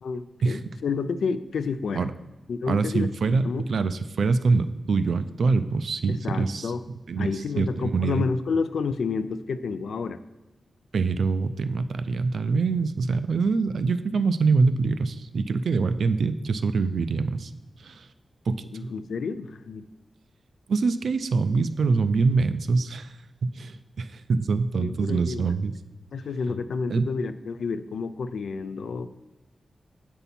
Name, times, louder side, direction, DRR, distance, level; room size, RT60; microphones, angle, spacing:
voice 1, 0.0-2.1 2.5-3.1 3.4-3.6 6.1-6.8 7.2-10.2 18.7-19.8 24.8-25.5 26.1-29.2, left 5 dB, 80° left, 12 dB, 0.3 m, -30 dB
voice 2, 2.7-6.7 7.1-8.3 10.9-17.5 17.8-18.1 18.5-18.9 20.7-23.1 23.4-25.7 26.9-27.1, right 4 dB, 65° right, 12 dB, 0.4 m, -24 dB
8.1 x 5.4 x 4.2 m, 1.1 s
wide cardioid pair, 180°, 0 cm